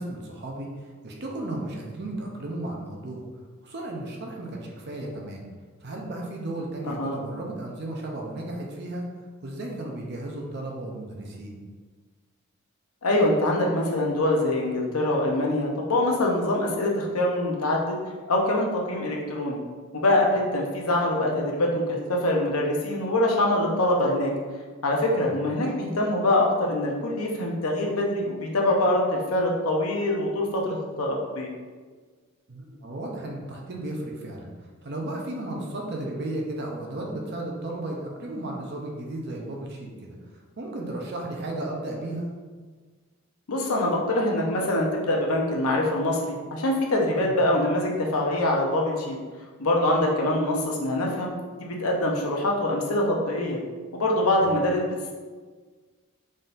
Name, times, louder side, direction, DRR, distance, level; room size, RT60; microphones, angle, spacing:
voice 1, 0.0-3.2 3.6-5.5 5.8-9.1 9.4-11.6 25.2-25.4 32.5-42.3 47.2-47.4 54.4-54.6, right 1 dB, 50° right, -1 dB, 0.7 m, -34 dB
voice 2, 6.8-7.2 13.0-17.9 18.3-19.6 19.9-24.3 24.8-31.5 43.5-49.2 49.6-51.3 51.6-53.6 53.9-55.1, left 1 dB, 80° left, -1 dB, 0.8 m, -24 dB
4.2 x 3.7 x 2.6 m, 1.4 s
head